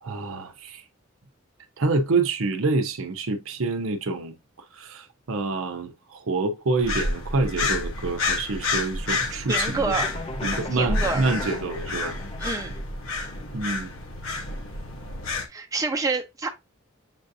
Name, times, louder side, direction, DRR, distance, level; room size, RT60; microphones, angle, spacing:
voice 1, 0.0-0.8 1.8-4.3 4.7-9.9 10.4-12.2 13.5-13.9, right 3 dB, 80° right, 0.7 m, -27 dB
sound 1, 6.8-15.4, left 3 dB, 80° left, 1.1 m, -29 dB
voice 2, 9.5-10.1 10.7-11.2 12.4-12.8 15.5-16.5, right 3 dB, 15° right, 0.7 m, -27 dB
sound 2, 9.9-12.8, left 2 dB, 30° left, 0.5 m, -37 dB
7.4 x 2.6 x 2.6 m
head